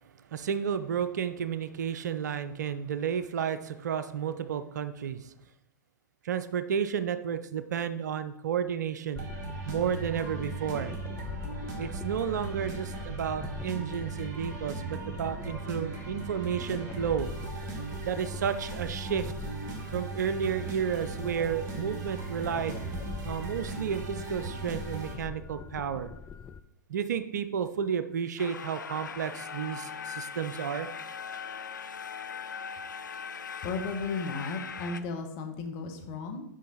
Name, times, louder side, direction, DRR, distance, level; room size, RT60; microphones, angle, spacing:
voice 1, 0.3-5.3 6.2-9.2 9.7-10.9 11.8-17.3 18.0-19.3 19.9-22.8 23.2-26.1 26.9-30.9, right 8 dB, 65° right, 11 dB, 0.5 m, -32 dB
sound 1, 9.1-26.6, left 6 dB, 15° left, 0.3 m, -44 dB
sound 2, 9.2-25.1, right 3 dB, 40° right, 1.6 m, -38 dB
sound 3, 28.4-35.0, left 6 dB, 80° left, 0.5 m, -40 dB
voice 2, 33.6-36.4, left 4 dB, 40° left, 4 dB, 1.1 m, -34 dB
6.3 x 5.4 x 4.2 m, 0.82 s
figure-of-eight pair, 100°, 10 cm